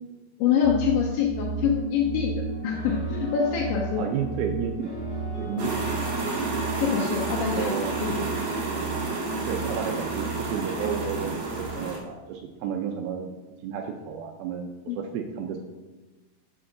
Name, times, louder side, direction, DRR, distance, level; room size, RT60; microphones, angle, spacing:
voice 1, 0.4-2.3 2.6-4.1 5.6-5.7 6.8-7.7 8.0-8.1 14.9-15.0, left 8 dB, 80° left, -2 dB, 2.7 m, -25 dB
sound 1, 0.6-11.8, right 4 dB, 45° right, 2.4 m, -35 dB
sound 2, 2.5-11.1, right 1 dB, 25° left, 1.4 m, -42 dB
voice 2, 4.0-4.9 5.4-6.0 7.3-7.9 9.5-13.3 13.6-15.6, right 7 dB, 80° right, 3 dB, 2.2 m, -32 dB
sound 3, 5.6-12.0, right 3 dB, 60° right, 2.1 m, -30 dB
6.4 x 4.8 x 6.1 m, 1.2 s
omnidirectional pair, 4.8 m